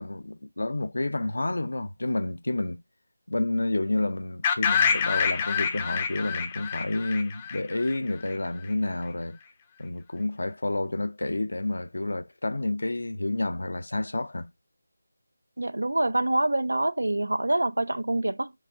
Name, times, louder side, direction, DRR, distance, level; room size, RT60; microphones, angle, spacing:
voice 1, 0.0-2.8 3.3-9.4 9.8-14.5, left 2 dB, 75° left, 0.5 m, -29 dB
sound 1, 4.4-8.3, left 6 dB, 20° left, 0.5 m, -27 dB
voice 2, 15.6-18.5, right 1 dB, 85° right, 0.5 m, -26 dB
4.6 x 3.7 x 2.5 m
figure-of-eight pair, 165°, 0 cm